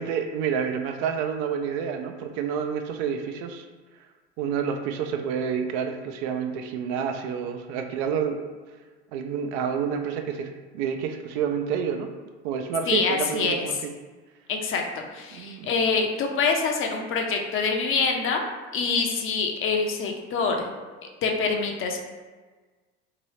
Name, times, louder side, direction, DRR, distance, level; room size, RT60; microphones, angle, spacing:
voice 1, 0.0-3.7 4.4-8.4 9.1-12.1 12.4-13.9 15.3-15.7, right 7 dB, 65° right, 5 dB, 0.5 m, -29 dB
voice 2, 12.9-13.6 14.5-18.4 18.7-20.7 21.2-22.0, left 4 dB, 40° left, 2 dB, 0.6 m, -25 dB
2.9 x 2.6 x 3.1 m, 1.4 s
hypercardioid pair, 80°, 33 cm